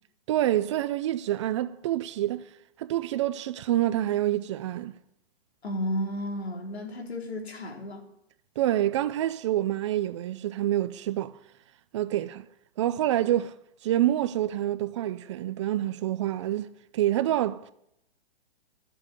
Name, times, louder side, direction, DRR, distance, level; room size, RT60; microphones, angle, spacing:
voice 1, 0.3-2.5 2.8-4.9 8.6-11.3 11.9-12.5 12.8-13.5 13.8-17.7, right 13 dB, 30° right, 0.4 m, -27 dB
voice 2, 5.6-8.0, equal, 85° left, 3.9 m, -33 dB
13.5 x 7.7 x 9.5 m
hypercardioid pair, 140°, 31 cm